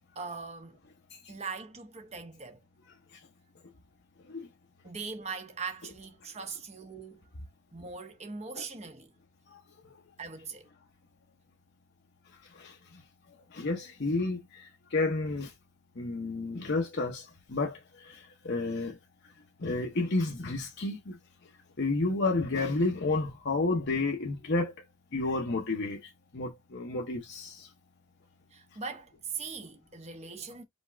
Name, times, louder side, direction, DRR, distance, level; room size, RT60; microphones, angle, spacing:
voice 1, 0.1-0.8 1.3-2.6 4.8-7.3 7.7-9.1 10.2-10.7 28.5-30.6, right 5 dB, 30° right, 0.9 m, -40 dB
voice 2, 13.5-15.5 16.0-19.0 19.6-21.2 21.8-24.7 25.1-27.7, left 3 dB, 55° left, 0.8 m, -31 dB
5.3 x 2.3 x 3.4 m
head